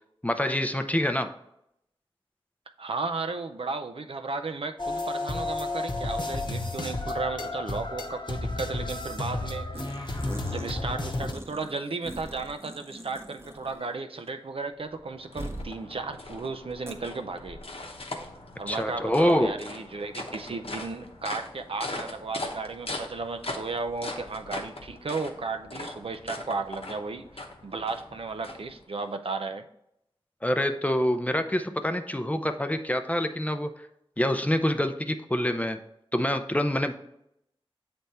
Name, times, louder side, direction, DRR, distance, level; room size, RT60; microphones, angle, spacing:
voice 1, 0.2-1.3 18.7-19.5 30.4-33.7 34.2-35.8 36.1-36.9, left 1 dB, 15° left, 8 dB, 0.5 m, -26 dB
voice 2, 2.8-9.9 10.5-17.6 18.6-29.7, right 3 dB, 75° right, 7 dB, 0.5 m, -34 dB
sound 1, 4.8-11.3, left 2 dB, 50° left, 0.8 m, -32 dB
sound 2, 9.7-10.8 11.1-13.9 14.2-14.3 15.4-15.7 16.9-17.0, right 1 dB, 25° right, 0.7 m, -42 dB
sound 3, 14.6-29.1, left 2 dB, 80° left, 0.8 m, -40 dB
7.7 x 3.5 x 4.1 m, 0.79 s
wide cardioid pair, 70°, 10 cm